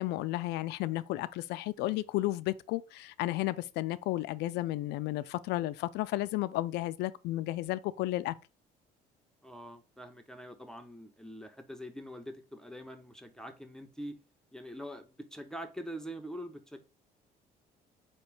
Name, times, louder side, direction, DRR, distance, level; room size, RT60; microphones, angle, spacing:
voice 1, 0.0-8.4, left 16 dB, 85° left, 0.4 m, -33 dB
voice 2, 9.4-14.2 14.5-16.8, equal, 5° left, 0.6 m, -44 dB
4.4 x 2.9 x 3.2 m
cardioid pair, 110°, 17 cm